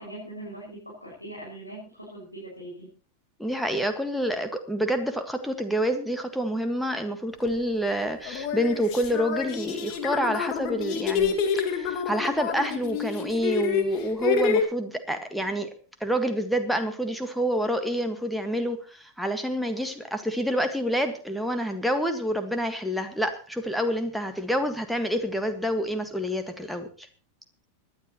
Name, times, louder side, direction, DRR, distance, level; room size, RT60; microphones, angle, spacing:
voice 1, 0.0-2.9, right 1 dB, 90° left, -6 dB, 6.2 m, -41 dB
voice 2, 3.4-15.7 16.0-27.1, equal, ahead, 7 dB, 1.7 m, -28 dB
sound 1, 7.5-7.6 8.3-14.6, left 7 dB, 40° left, 2.1 m, -28 dB
25.0 x 10.5 x 3.1 m, 0.40 s
figure-of-eight pair, 90°, 0 cm